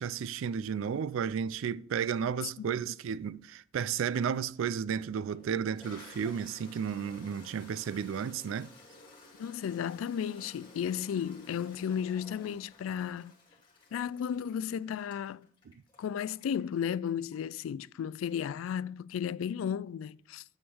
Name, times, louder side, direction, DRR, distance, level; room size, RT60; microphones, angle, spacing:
voice 1, 0.0-8.7, right 7 dB, 80° right, 0.3 m, -33 dB
Toilet flush, 4.4-4.5 5.2-17.6, left 2 dB, 25° left, 2.5 m, -55 dB
voice 2, 9.4-13.3 13.9-15.5 16.0-20.4, left 8 dB, 85° left, 0.3 m, -34 dB
9.6 x 3.7 x 6.9 m
head